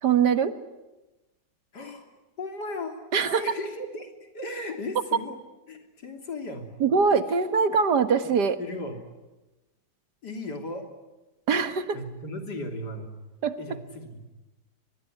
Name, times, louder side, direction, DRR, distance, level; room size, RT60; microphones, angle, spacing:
voice 1, 0.0-0.5 3.1-3.4 6.8-8.6 11.5-12.0 13.4-13.6, right 6 dB, 80° right, 10 dB, 2.0 m, -22 dB
voice 2, 1.7-2.0 2.4-3.0 3.3-5.4 5.7-6.7 8.2-8.3 8.6-9.0 10.2-10.9 11.9-13.1 13.6-14.2, left 1 dB, 80° left, 4 dB, 3.8 m, -36 dB
24.0 x 21.5 x 10.0 m, 1.1 s
omnidirectional pair, 1.8 m